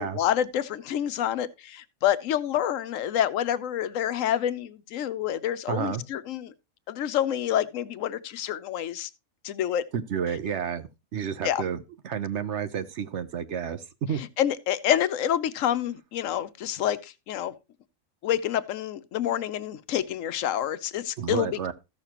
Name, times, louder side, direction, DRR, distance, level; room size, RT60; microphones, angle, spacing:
voice 1, 0.0-6.5 6.9-9.1 9.4-9.8 11.4-11.6 14.4-17.5 18.2-21.5, left 10 dB, 80° left, 1.0 m, -27 dB
voice 2, 5.7-6.0 9.9-14.2 21.2-21.7, right 8 dB, 65° right, 1.0 m, -31 dB
14.0 x 6.6 x 2.9 m
omnidirectional pair, 1.3 m